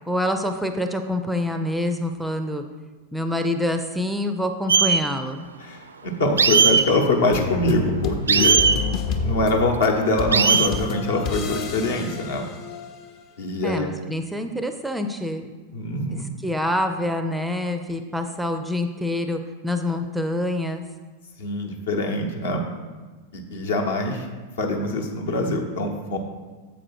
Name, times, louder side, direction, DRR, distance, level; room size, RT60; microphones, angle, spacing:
voice 1, 0.1-2.6 3.1-5.5 13.6-15.5 16.1-20.8, left 1 dB, 5° right, 6 dB, 0.4 m, -26 dB
sound 1, 4.7-5.0 6.4-6.8 8.3-8.8 10.3-10.7, right 6 dB, 70° right, 0.4 m, -17 dB
voice 2, 5.6-8.6 9.2-12.5 13.4-13.9 15.7-16.2 21.4-22.6 23.3-24.3 24.6-26.2, left 2 dB, 60° left, 3 dB, 1.0 m, -24 dB
sound 2, 7.3-13.1, left 4 dB, 40° left, 0.7 m, -29 dB
7.4 x 4.9 x 4.7 m, 1.3 s
figure-of-eight pair, 90°, 0 cm